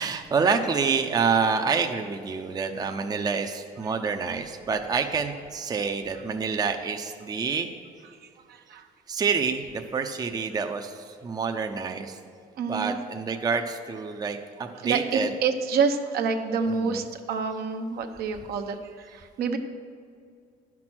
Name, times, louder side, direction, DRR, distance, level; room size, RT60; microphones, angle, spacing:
voice 1, 0.0-7.7 9.1-12.2 12.7-15.4 16.6-17.0, right 5 dB, 25° right, 5 dB, 0.6 m, -27 dB
voice 2, 8.1-8.9 12.6-13.0 14.7-19.6, right 5 dB, 70° right, 5 dB, 0.8 m, -28 dB
10.5 x 6.0 x 6.1 m, 2.3 s
cardioid pair, 110°, 17 cm